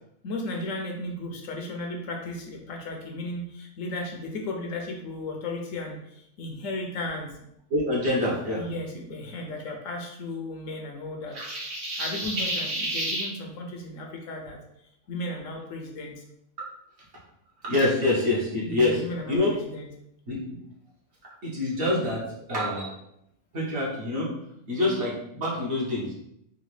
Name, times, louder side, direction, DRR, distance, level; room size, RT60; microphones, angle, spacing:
voice 1, 0.2-7.3 8.2-11.4 12.0-14.6 15.1-16.2 18.6-19.9, left 2 dB, 70° left, 1 dB, 1.0 m, -35 dB
voice 2, 7.7-8.6 17.7-18.9 19.3-19.5 20.3-20.4 21.4-22.2 22.5-22.9 23.5-24.3 24.7-26.1, left 2 dB, 55° right, -5 dB, 1.2 m, -25 dB
sound 1, 11.3-13.3, right 1 dB, 75° right, 1.6 m, -30 dB
3.8 x 2.2 x 3.1 m, 0.77 s
omnidirectional pair, 1.4 m